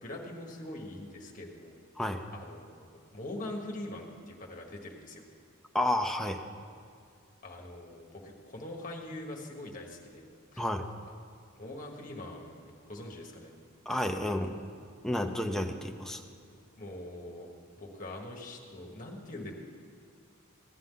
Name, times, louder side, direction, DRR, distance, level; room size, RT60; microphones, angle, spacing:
voice 1, 0.0-1.8 2.3-2.9 3.1-5.2 7.4-10.3 10.5-10.6 11.6-13.5 16.8-17.5 17.8-19.5, left 1 dB, 40° left, 0 dB, 1.4 m, -43 dB
voice 2, 5.7-6.4 10.6-10.9 13.9-14.5 15.0-16.2, left 1 dB, ahead, 3 dB, 0.5 m, -31 dB
16.0 x 9.5 x 3.8 m, 2.3 s
head